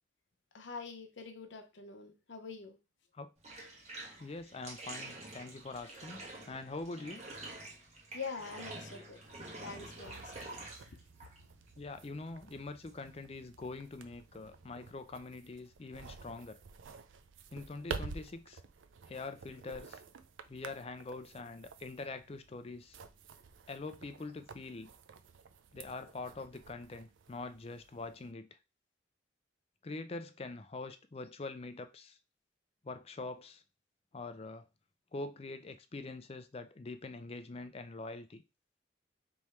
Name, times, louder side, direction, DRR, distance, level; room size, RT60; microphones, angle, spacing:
voice 1, 0.5-2.8 8.1-10.5, left 4 dB, 70° left, 0.7 m, -45 dB
Bathtub (filling or washing), 3.4-15.0, right 2 dB, 35° right, 1.2 m, -49 dB
voice 2, 4.2-7.2 11.8-16.6 17.5-18.6 19.1-20.0 20.5-23.0 23.7-24.9 25.7-28.5 29.8-32.2 32.8-33.6 34.1-34.7 35.1-38.4, left 3 dB, 30° left, 0.4 m, -44 dB
sound 1, 9.2-28.3, right 4 dB, 80° right, 0.5 m, -50 dB
3.5 x 3.0 x 4.3 m
head